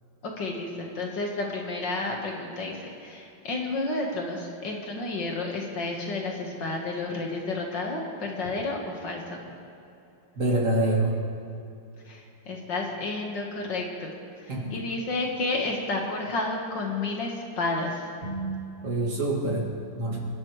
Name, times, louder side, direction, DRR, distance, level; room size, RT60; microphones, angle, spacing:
voice 1, 0.2-9.4 12.0-14.1 14.4-18.1, left 2 dB, 65° left, 0 dB, 2.2 m, -31 dB
voice 2, 10.4-11.2 14.5-14.8 18.2-20.2, right 2 dB, 40° right, -2 dB, 2.6 m, -27 dB
26.5 x 11.5 x 3.2 m, 2.7 s
omnidirectional pair, 2.1 m